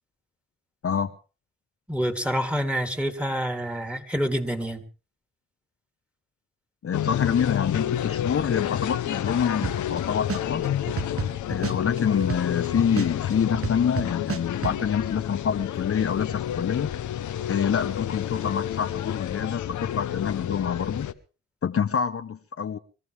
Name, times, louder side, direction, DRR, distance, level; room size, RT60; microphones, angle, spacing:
voice 1, 1.9-4.8, equal, 5° right, 3.3 m, -27 dB
voice 2, 6.8-10.7 11.5-16.9 17.5-21.1 21.6-22.8, left 7 dB, 50° left, 1.0 m, -26 dB
sound 1, 6.9-21.1, left 11 dB, 80° left, 1.0 m, -29 dB
sound 2, 9.6-10.0 10.3-12.7 13.0-14.8, right 6 dB, 50° right, 1.3 m, -30 dB
24.5 x 14.5 x 3.5 m
cardioid pair, 55°, 29 cm